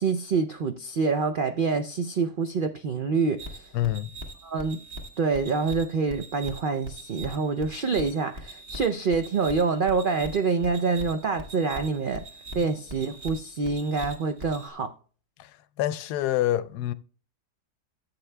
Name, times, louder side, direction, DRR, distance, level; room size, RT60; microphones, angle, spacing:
voice 1, 0.0-3.6 4.4-4.8 5.2-12.2 12.5-14.9, right 4 dB, 80° right, 0.4 m, -26 dB
sound 1, 3.4-14.7, right 1 dB, 40° right, 1.7 m, -42 dB
voice 2, 3.7-4.1 15.4-16.9, left 13 dB, 90° left, 1.1 m, -27 dB
14.5 x 8.2 x 2.2 m
omnidirectional pair, 1.7 m